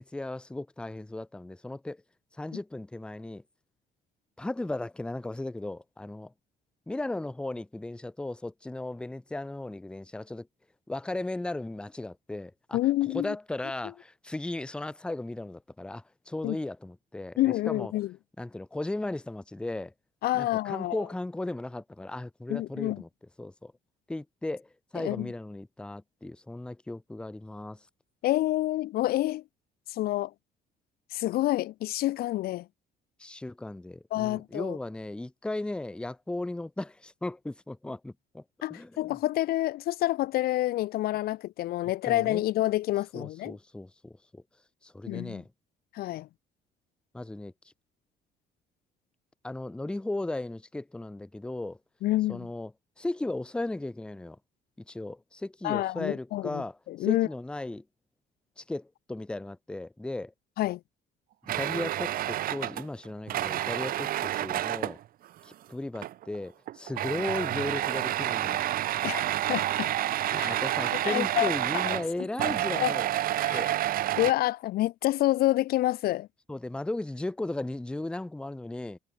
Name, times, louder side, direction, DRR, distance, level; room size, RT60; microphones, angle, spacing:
voice 1, 0.0-2.0 2.4-3.4 4.4-6.3 6.9-10.5 10.9-12.8 13.1-17.9 18.4-19.9 20.3-23.1 23.4-23.7 24.1-27.8 33.2-38.4 38.7-39.2 42.0-42.5 43.1-44.4 44.8-45.5 47.1-47.5 49.4-51.8 52.3-52.7 53.0-54.4 54.9-57.8 58.6-60.3 61.6-65.0 65.4-68.6 70.3-73.1 73.5-73.7 76.5-79.0, left 2 dB, 5° left, 0.6 m, -36 dB
voice 2, 12.7-13.3 16.4-16.6 17.4-18.1 20.2-21.0 22.5-23.0 25.0-25.3 28.2-29.4 29.9-30.3 31.1-32.7 34.1-34.8 38.6-43.6 45.1-45.4 45.9-46.3 52.0-52.5 55.6-56.6 56.9-57.3 60.6-60.8 69.0-69.2 69.5-69.9 70.4-70.5 71.0-71.5 71.9-72.0 72.8-72.9 73.4-73.7 74.2-76.3, left 16 dB, 65° left, 0.5 m, -28 dB
sound 1, 61.5-65.0 65.9-66.4 66.7-74.3, right 13 dB, 60° right, 0.7 m, -29 dB
cardioid pair, 110°, 17 cm